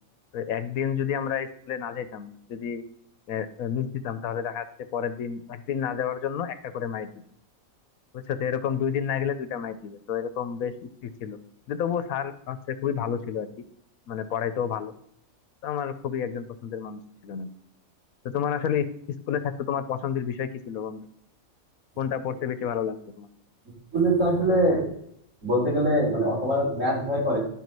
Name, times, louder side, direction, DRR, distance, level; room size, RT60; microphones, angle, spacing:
voice 1, 0.3-2.8 3.3-4.7 4.9-7.1 8.1-11.4 11.7-13.5 14.1-14.9 15.6-17.5 18.2-21.0 22.0-23.3, left 8 dB, 80° left, 12 dB, 1.1 m, -30 dB
voice 2, 23.9-24.9 25.4-27.4, right 1 dB, 60° right, -4 dB, 4.1 m, -23 dB
10.5 x 4.7 x 5.3 m, 0.69 s
omnidirectional pair, 1.5 m